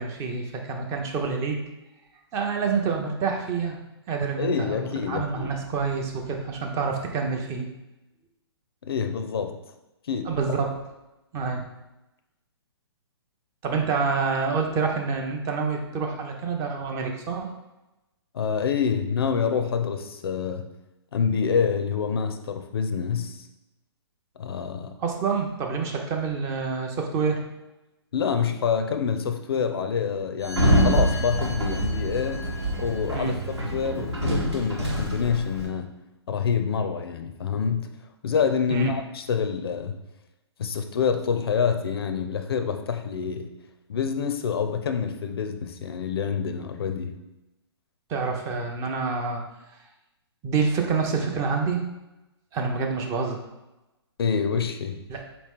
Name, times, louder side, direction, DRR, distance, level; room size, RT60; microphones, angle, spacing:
voice 1, 0.0-1.6 2.3-3.8 4.1-7.7 10.3-10.7 11.3-11.6 13.6-17.5 25.0-27.4 33.1-33.4 38.7-38.9 48.1-49.4 50.4-51.8 52.5-53.4 55.1-55.2, right 5 dB, 20° right, 2 dB, 0.5 m, -27 dB
voice 2, 4.4-5.5 8.8-9.6 10.1-10.3 18.3-20.7 21.1-23.4 24.4-25.0 28.1-32.5 32.8-35.9 36.3-37.9 38.2-40.0 40.6-43.5 43.9-47.1 54.2-55.0, left 6 dB, 60° left, 7 dB, 0.5 m, -27 dB
Sliding door, 30.4-35.7, equal, 85° right, 1.1 m, -25 dB
4.3 x 3.0 x 3.5 m, 0.97 s
figure-of-eight pair, 125°, 14 cm